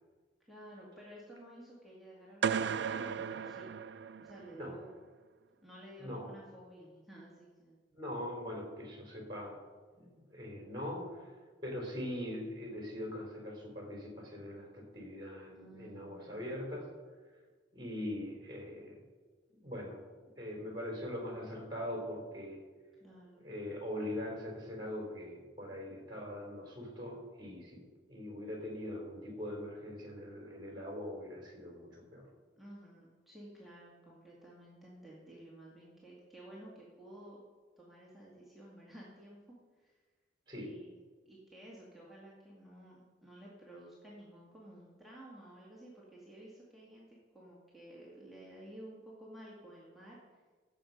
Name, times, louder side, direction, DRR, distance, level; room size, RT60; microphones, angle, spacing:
voice 1, 0.5-3.7 4.2-5.0 5.6-7.8 15.5-16.5 23.0-23.4 32.6-37.4 37.8-40.0 40.6-40.9 41.3-50.2, right 1 dB, ahead, -6 dB, 2.1 m, -53 dB
sound 1, 2.4-4.5, right 7 dB, 65° right, 0.4 m, -35 dB
voice 2, 7.9-9.6 9.9-11.3 11.6-16.9 17.7-19.0 19.5-20.0 20.4-22.6 23.4-27.8 28.1-32.3 40.5-40.7, left 1 dB, 25° right, 0 dB, 3.6 m, -42 dB
15.5 x 7.4 x 5.3 m, 1.4 s
head